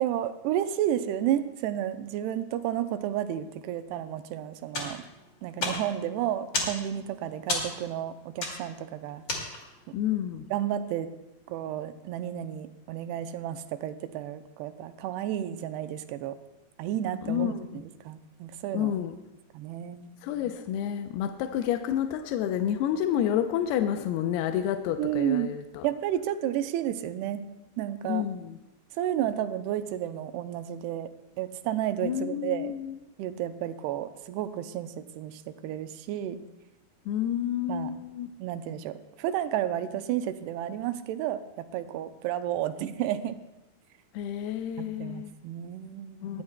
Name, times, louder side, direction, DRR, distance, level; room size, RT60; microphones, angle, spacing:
voice 1, 0.0-5.0 5.4-9.2 10.5-11.1 11.5-16.4 16.8-19.0 19.5-20.1 25.0-25.5 25.8-27.4 27.8-28.3 28.9-31.1 31.4-32.7 33.2-36.4 37.7-37.9 38.4-43.4 44.8-46.4, right 11 dB, 85° right, 10 dB, 2.7 m, -32 dB
sound 1, 4.7-9.9, left 2 dB, 35° left, 2.3 m, -34 dB
voice 2, 9.9-10.5 17.2-17.8 18.7-19.2 20.2-25.9 28.0-28.6 32.0-33.0 37.1-38.4 44.1-45.3 46.2-46.4, left 10 dB, 85° left, 7 dB, 2.6 m, -29 dB
20.0 x 14.5 x 2.2 m, 0.97 s
omnidirectional pair, 4.6 m